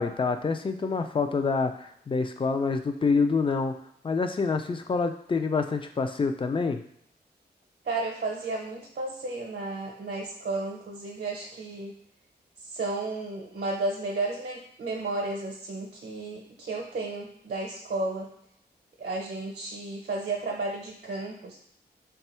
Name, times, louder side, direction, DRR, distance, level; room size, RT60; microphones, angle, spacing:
voice 1, 0.0-3.8 4.0-6.8, left 4 dB, 30° left, 7 dB, 0.4 m, -27 dB
voice 2, 7.8-12.0 12.6-18.3 19.0-21.6, right 2 dB, 70° right, -1 dB, 0.7 m, -33 dB
3.3 x 2.3 x 4.2 m, 0.69 s
wide cardioid pair, 100°, 18 cm